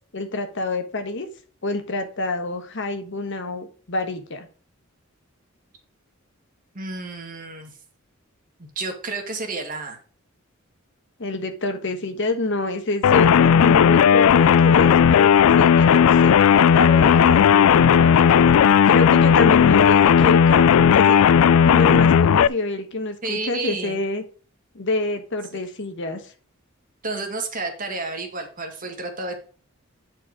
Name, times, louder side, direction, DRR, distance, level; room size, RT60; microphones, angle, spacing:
voice 1, 0.1-1.3 1.6-4.5 11.2-18.4 18.9-21.3 21.6-24.2 24.7-26.2, left 2 dB, 60° left, 7 dB, 1.3 m, -27 dB
voice 2, 6.7-7.8 8.6-10.0 19.6-19.8 23.2-24.0 27.0-29.4, right 3 dB, 40° right, 4 dB, 1.9 m, -31 dB
sound 1, 13.0-22.5, left 7 dB, 90° left, 0.3 m, -14 dB
8.9 x 4.6 x 4.9 m, 0.40 s
head